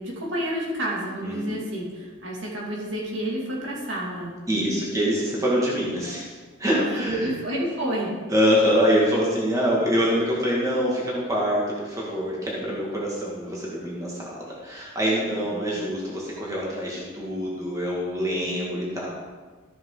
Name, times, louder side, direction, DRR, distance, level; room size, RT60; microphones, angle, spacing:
voice 1, 0.0-4.9 6.7-8.1 15.2-15.7 18.3-18.9, right 1 dB, 65° right, -4 dB, 2.6 m, -30 dB
voice 2, 1.2-1.6 4.5-7.3 8.3-19.1, equal, 15° right, -5 dB, 2.0 m, -25 dB
13.5 x 7.1 x 4.0 m, 1.4 s
head